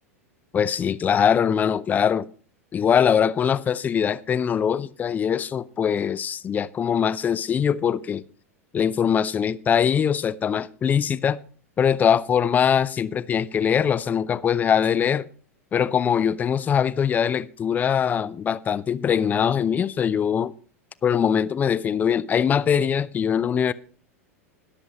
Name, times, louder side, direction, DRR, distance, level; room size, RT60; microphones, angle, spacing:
voice 1, 0.5-2.3 2.7-8.2 8.7-11.4 11.8-15.3 15.7-20.5 21.0-23.7, left 8 dB, 20° left, 0.5 m, -22 dB
21.0 x 7.5 x 2.9 m
figure-of-eight pair, 85°, 8 cm